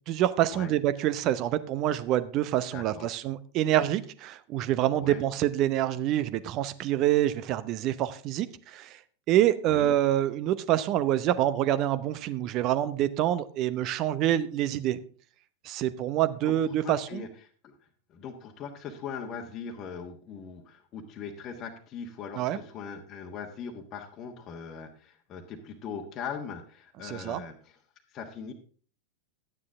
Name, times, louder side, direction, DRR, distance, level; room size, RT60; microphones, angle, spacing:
voice 1, 0.1-9.0 9.3-15.0 15.6-17.2 22.4-22.6 27.0-27.4, right 12 dB, 40° right, 15 dB, 0.7 m, -26 dB
voice 2, 2.7-3.1 5.0-5.2 9.6-9.9 16.4-17.8 18.1-27.8 28.1-28.5, left 6 dB, 35° left, 2 dB, 1.3 m, -40 dB
11.5 x 9.6 x 3.6 m, 0.42 s
figure-of-eight pair, 90°, 0 cm